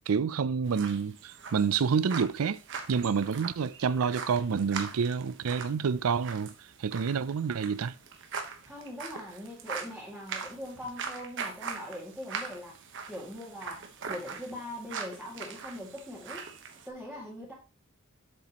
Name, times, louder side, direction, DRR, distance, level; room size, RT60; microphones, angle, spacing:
voice 1, 0.1-2.6 2.9-6.5 6.8-7.9, right 6 dB, 85° right, 0.5 m, -28 dB
sound 1, 0.7-16.9, right 5 dB, 60° right, 1.2 m, -41 dB
voice 2, 8.6-12.8 13.1-16.5 16.9-17.5, left 1 dB, ahead, 2.2 m, -41 dB
7.7 x 7.3 x 3.0 m
head